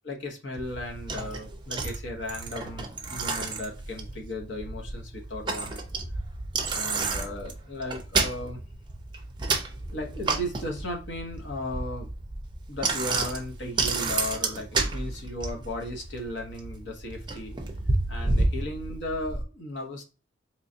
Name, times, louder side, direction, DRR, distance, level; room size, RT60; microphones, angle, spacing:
voice 1, 0.0-5.8 6.7-8.6 9.9-12.1 12.7-17.6 18.1-20.0, left 1 dB, 60° left, 0.9 m, -36 dB
Bicycle, 0.6-19.4, right 3 dB, 25° right, 0.5 m, -31 dB
3.8 x 3.1 x 2.6 m
head